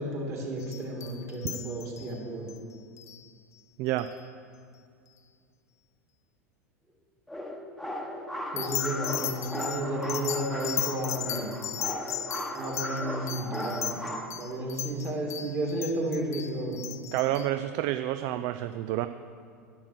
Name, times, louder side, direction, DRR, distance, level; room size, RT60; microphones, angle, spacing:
voice 1, 0.0-2.5 8.5-11.5 12.5-14.0 14.4-16.8, right 1 dB, 30° right, 0 dB, 2.5 m, -32 dB
sound 1, 0.6-2.1 2.5-2.6 3.0-3.2 4.0-4.1 8.6-17.5, left 10 dB, 35° left, 0.7 m, -36 dB
sound 2, 7.3-14.3, equal, ahead, 1.1 m, -37 dB
voice 2, 17.1-19.1, right 14 dB, 50° right, 10 dB, 0.4 m, -29 dB
11.0 x 6.3 x 6.4 m, 2.2 s
figure-of-eight pair, 85°, 9 cm